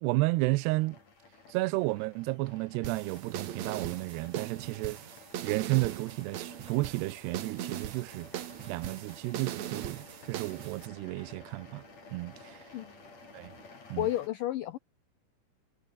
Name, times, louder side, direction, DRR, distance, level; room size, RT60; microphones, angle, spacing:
voice 1, 0.0-1.0 1.5-5.0 5.4-8.3 8.7-11.8 12.1-12.6 13.3-13.5 13.9-14.1, right 21 dB, 80° right, 2.5 m, -32 dB
sound 1, 0.6-14.3, left 4 dB, 40° left, 6.0 m, -54 dB
sound 2, 2.8-10.9, right 11 dB, 65° right, 1.9 m, -40 dB
sound 3, 5.4-13.8, right 6 dB, 45° right, 4.6 m, -59 dB
voice 2, 14.0-14.8, left 14 dB, 85° left, 1.9 m, -31 dB
omnidirectional pair, 5.1 m